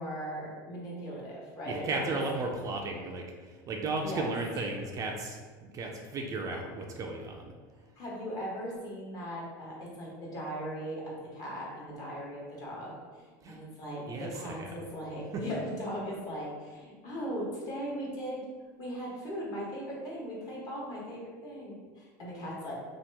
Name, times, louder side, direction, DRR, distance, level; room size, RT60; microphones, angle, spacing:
voice 1, 0.0-2.1 4.0-4.3 8.0-18.4 18.8-22.7, equal, 40° left, -5 dB, 1.1 m, -38 dB
voice 2, 1.7-7.5 13.4-13.6 14.1-14.9, right 2 dB, 35° right, 1 dB, 0.4 m, -35 dB
2.9 x 2.2 x 3.3 m, 1.5 s
supercardioid pair, 110°, 10 cm